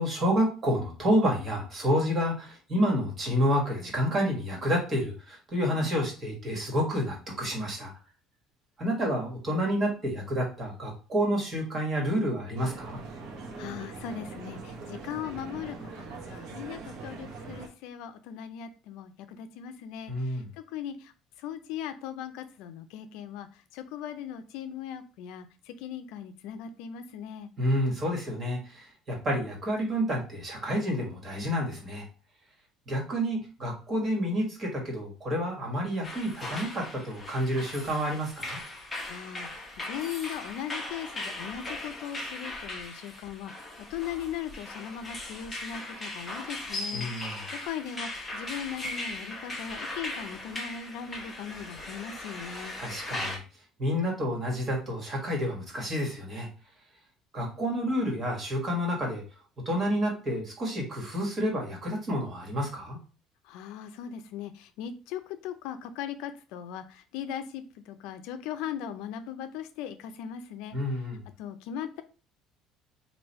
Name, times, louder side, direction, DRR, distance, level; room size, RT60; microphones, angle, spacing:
voice 1, 0.0-7.9 8.8-13.0 20.1-20.5 27.6-32.0 32.9-38.6 46.9-47.4 52.8-53.4 53.8-56.5 57.3-59.2 59.6-63.0 70.7-71.2, equal, 30° right, -1 dB, 1.7 m, -29 dB
sound 1, 12.5-17.7, right 3 dB, 70° right, 1.0 m, -42 dB
voice 2, 13.6-21.1 21.4-27.5 39.1-47.4 47.6-52.8 63.4-70.8 71.4-72.0, left 9 dB, 80° left, 9 dB, 0.4 m, -39 dB
sound 2, 36.0-53.4, left 2 dB, 15° left, 1.0 m, -38 dB
3.2 x 2.6 x 4.1 m, 0.35 s
cardioid pair, 125°, 0 cm